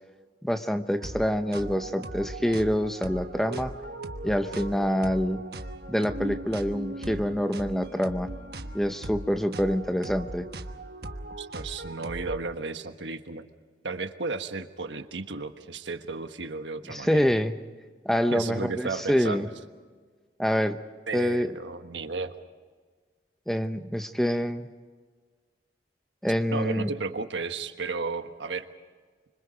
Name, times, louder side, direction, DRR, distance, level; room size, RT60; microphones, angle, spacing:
voice 1, 0.4-3.7 4.2-5.4 5.9-8.3 8.7-10.5 16.9-17.6 18.0-19.5 20.4-20.8 21.1-21.5 23.5-24.7 26.2-26.9, equal, ahead, 8 dB, 0.9 m, -26 dB
sound 1, 1.0-12.4, right 1 dB, 60° right, 1.2 m, -38 dB
voice 2, 11.4-13.4 13.8-17.2 18.3-19.5 21.1-22.3 26.5-28.7, right 3 dB, 90° right, 8 dB, 1.4 m, -34 dB
26.5 x 25.0 x 5.1 m, 1.5 s
head